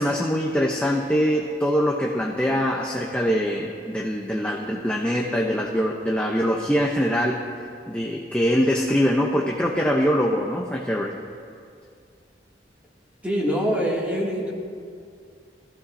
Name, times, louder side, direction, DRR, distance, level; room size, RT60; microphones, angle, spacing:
voice 1, 0.0-7.4 7.9-11.1, equal, 5° left, -2 dB, 0.8 m, -23 dB
voice 2, 13.2-14.5, equal, 10° right, -5 dB, 2.5 m, -24 dB
22.0 x 15.0 x 2.7 m, 2.3 s
head